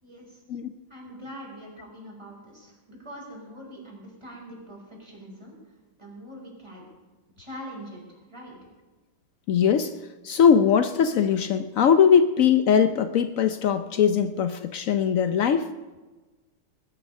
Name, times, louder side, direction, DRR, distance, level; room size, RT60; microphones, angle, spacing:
voice 1, 0.0-0.4 0.9-5.5 6.0-6.9 7.4-8.6, equal, 15° right, -2 dB, 4.9 m, -43 dB
voice 2, 9.5-9.9 10.2-15.7, left 7 dB, 90° left, 9 dB, 0.7 m, -20 dB
21.0 x 11.0 x 5.4 m, 1.2 s
omnidirectional pair, 2.2 m